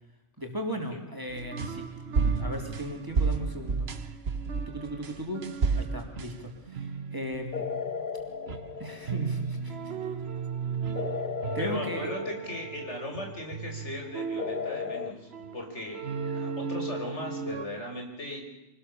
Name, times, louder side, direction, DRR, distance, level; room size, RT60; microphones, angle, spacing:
voice 1, 0.4-4.2 4.7-7.6 8.8-10.0 11.5-12.1, equal, 15° right, 2 dB, 3.6 m, -37 dB
sound 1, 1.3-7.9 8.3-17.7, right 5 dB, 60° right, 1.4 m, -33 dB
sound 2, 7.5-9.6 11.0-13.0 14.4-15.1, left 5 dB, 50° left, 1.0 m, -35 dB
voice 2, 11.6-18.4, left 1 dB, 75° left, 2 dB, 5.1 m, -38 dB
25.0 x 19.5 x 7.1 m, 0.99 s
omnidirectional pair, 1.2 m